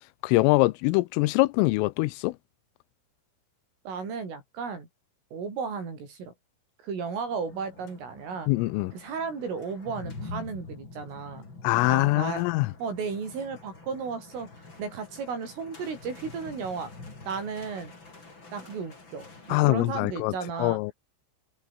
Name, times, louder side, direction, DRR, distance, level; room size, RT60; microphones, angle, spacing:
voice 1, 0.2-2.4 8.5-8.9 11.6-12.7 19.5-20.9, left 21 dB, 90° left, 3.3 m, -23 dB
voice 2, 3.9-4.9 5.3-6.3 6.8-8.5 8.9-11.5 11.9-12.5 12.8-14.5 14.8-16.9 17.3-17.9 18.5-20.8, right 5 dB, 75° right, 9.9 m, -34 dB
sound 1, 7.3-19.6, left 3 dB, 25° left, 5.6 m, -46 dB
omnidirectional pair, 5.8 m